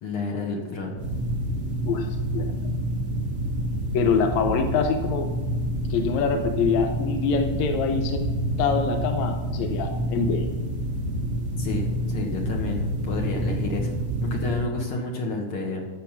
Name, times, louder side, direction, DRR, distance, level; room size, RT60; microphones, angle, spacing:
voice 1, 0.0-1.0 11.6-13.9 14.2-15.9, left 3 dB, 55° left, 1 dB, 1.9 m, -30 dB
sound 1, 1.0-14.7, right 1 dB, 70° right, 0.7 m, -28 dB
voice 2, 1.9-2.5 3.9-5.3 5.9-8.3 8.6-10.5, left 5 dB, 75° left, 5 dB, 2.0 m, -25 dB
12.5 x 7.3 x 5.9 m, 1.3 s
omnidirectional pair, 3.4 m